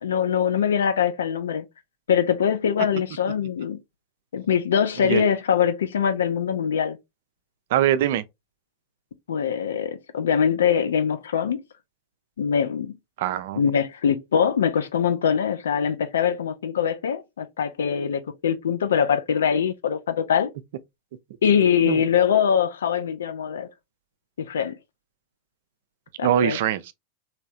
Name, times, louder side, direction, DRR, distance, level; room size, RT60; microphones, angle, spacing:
voice 1, 0.0-1.7 2.1-3.8 4.3-7.0 9.3-11.6 12.4-12.9 13.6-20.5 21.4-23.7 24.4-24.8 26.2-26.6, left 8 dB, 65° left, 0.3 m, -23 dB
voice 2, 7.7-8.2 13.2-13.6 21.8-22.0 26.2-26.9, right 11 dB, 55° right, 0.3 m, -22 dB
3.1 x 2.7 x 2.5 m
figure-of-eight pair, 90°, 0 cm